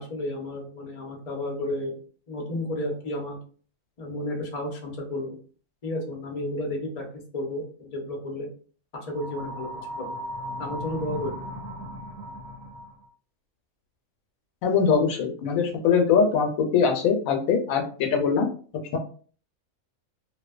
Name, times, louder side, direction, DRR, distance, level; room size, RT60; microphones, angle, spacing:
voice 1, 0.0-1.9 2.3-3.4 4.0-5.4 5.8-7.0 7.3-8.5 8.9-9.7 9.9-10.0 10.6-11.3, left 1 dB, 40° left, 0 dB, 0.6 m, -32 dB
sound 1, 9.1-13.1, equal, 80° right, 1.1 m, -37 dB
voice 2, 14.6-18.5 18.7-19.0, left 6 dB, 75° left, 4 dB, 1.0 m, -22 dB
2.6 x 2.1 x 2.3 m, 0.42 s
omnidirectional pair, 1.5 m